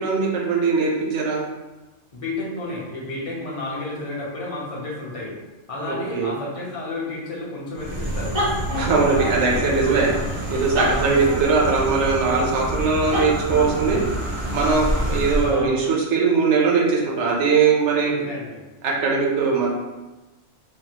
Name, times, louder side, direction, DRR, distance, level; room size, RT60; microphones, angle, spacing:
voice 1, 0.0-1.4 5.9-6.3 8.7-10.1 10.5-14.0 14.5-18.1 18.8-19.7, right 4 dB, 70° right, -2 dB, 1.0 m, -20 dB
voice 2, 2.1-5.3 5.7-8.4 8.7-10.0 10.9-11.4 15.5-15.8 18.1-18.6, left 2 dB, 35° left, -4 dB, 0.6 m, -31 dB
sound 1, 7.7-15.6, right 1 dB, 35° right, 0.5 m, -26 dB
3.4 x 2.0 x 2.9 m, 1.1 s
omnidirectional pair, 1.3 m